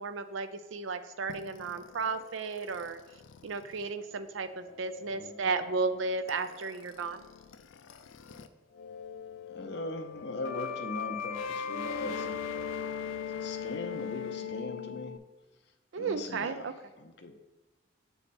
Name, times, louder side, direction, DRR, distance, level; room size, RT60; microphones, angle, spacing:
voice 1, 0.0-3.0 3.4-7.2 15.9-16.7, right 4 dB, 85° right, 10 dB, 0.5 m, -34 dB
sound 1, 1.3-8.5 8.7-15.2, left 7 dB, 90° left, 0.4 m, -40 dB
voice 2, 9.5-12.4 13.4-15.2 15.9-16.7 17.0-17.3, left 2 dB, 60° left, 5 dB, 0.7 m, -40 dB
8.3 x 3.5 x 4.2 m, 1.1 s
head